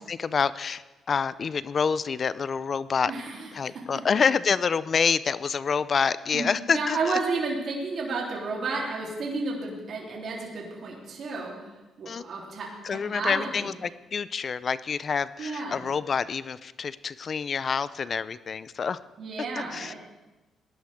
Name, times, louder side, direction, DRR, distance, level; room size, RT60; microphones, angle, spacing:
voice 1, 0.0-3.1 3.5-7.2 12.1-12.2 12.8-19.0 19.4-19.9, left 6 dB, 45° left, 17 dB, 0.5 m, -27 dB
voice 2, 3.1-3.5 6.3-11.7 12.0-13.7 15.4-15.8 19.2-19.9, right 3 dB, 60° right, -3 dB, 3.4 m, -32 dB
19.5 x 11.0 x 3.6 m, 1.1 s
cardioid pair, 90°, 0 cm